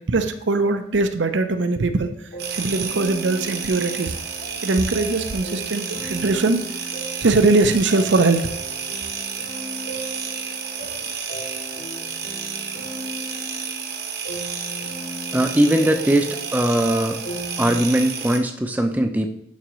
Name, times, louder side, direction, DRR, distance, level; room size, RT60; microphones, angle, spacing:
voice 1, 0.0-2.1 2.5-4.2 4.6-6.6 7.2-8.4, right 3 dB, 80° right, 9 dB, 0.6 m, -20 dB
sound 1, 2.3-17.8, equal, 75° left, 3.0 m, -37 dB
sound 2, 2.4-18.4, right 6 dB, 55° right, 0.9 m, -31 dB
voice 2, 15.3-17.2 17.6-19.3, right 1 dB, 10° right, 4 dB, 0.5 m, -20 dB
11.5 x 4.9 x 3.1 m, 0.72 s
head